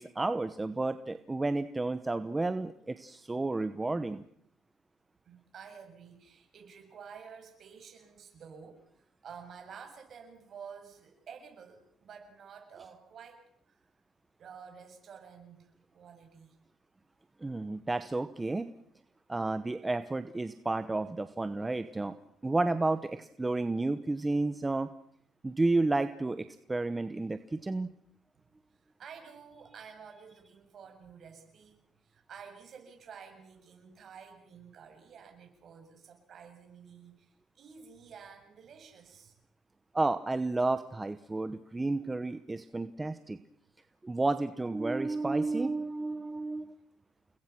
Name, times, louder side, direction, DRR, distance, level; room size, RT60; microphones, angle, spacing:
voice 1, 0.0-4.2 17.4-18.7 19.3-22.1 22.4-24.9 25.4-27.9 39.9-43.4 44.0-46.7, right 2 dB, 15° right, 11 dB, 0.9 m, -31 dB
voice 2, 5.3-8.8 9.2-13.4 13.7-13.8 14.4-16.5 27.6-27.7 29.0-37.3 37.5-39.3, right 6 dB, 45° right, 3 dB, 7.5 m, -51 dB
29.5 x 21.5 x 6.1 m, 0.70 s
cardioid pair, 120°, 0 cm